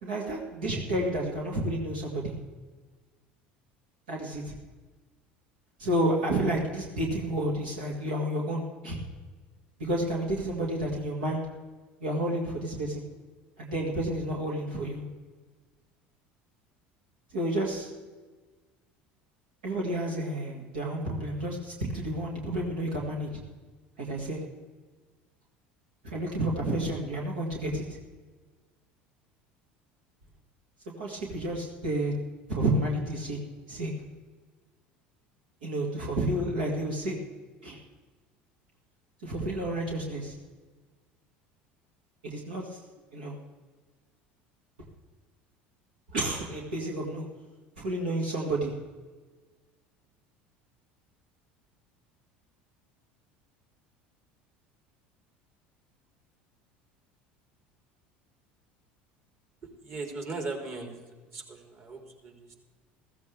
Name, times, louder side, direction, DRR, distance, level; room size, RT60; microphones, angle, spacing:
voice 1, 0.0-2.3 4.1-4.5 5.8-9.0 9.8-11.5 12.0-13.0 13.6-15.0 17.3-17.9 19.6-23.3 24.0-24.4 26.0-27.9 31.0-32.1 32.5-33.4 33.7-33.9 35.6-37.2 37.6-37.8 39.2-40.3 42.2-42.8 43.1-43.3 46.1-47.3 47.8-48.7, right 1 dB, 85° right, -2 dB, 2.2 m, -30 dB
voice 2, 59.6-62.5, right 3 dB, 50° right, 2 dB, 3.7 m, -39 dB
15.0 x 15.0 x 3.5 m, 1.4 s
hypercardioid pair, 80°, 5 cm